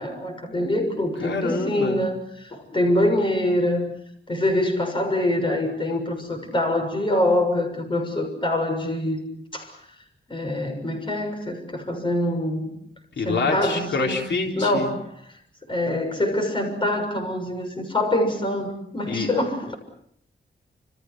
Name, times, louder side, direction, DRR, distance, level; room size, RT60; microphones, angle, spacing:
voice 1, 0.0-3.9 4.3-9.2 9.5-9.7 10.3-12.7 13.2-14.2 14.5-15.1 15.7-19.7, left 1 dB, 25° left, 6.7 m, -24 dB
voice 2, 1.2-2.0 13.2-14.9 19.1-19.3, left 4 dB, 75° left, 3.7 m, -26 dB
29.0 x 28.5 x 6.2 m
wide cardioid pair, 145°, 19 cm